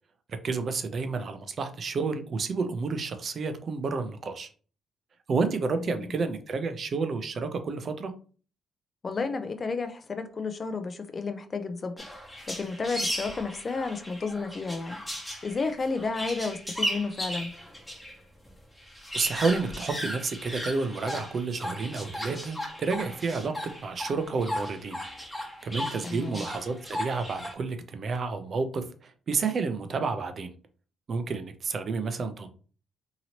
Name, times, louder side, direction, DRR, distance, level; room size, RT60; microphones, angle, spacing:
voice 1, 0.4-4.5 5.3-8.1 19.1-23.5 23.8-25.0 25.6-30.5 31.1-32.5, right 4 dB, 50° right, 8 dB, 0.5 m, -30 dB
voice 2, 5.8-6.1 9.0-12.0 12.5-15.0 15.4-17.5 26.0-26.4, left 4 dB, 35° left, 8 dB, 0.4 m, -32 dB
sound 1, 12.0-18.1 18.4-18.5 18.8-27.5, equal, 10° left, 1.1 m, -36 dB
2.9 x 2.8 x 2.8 m, 0.39 s
cardioid pair, 90°, 0 cm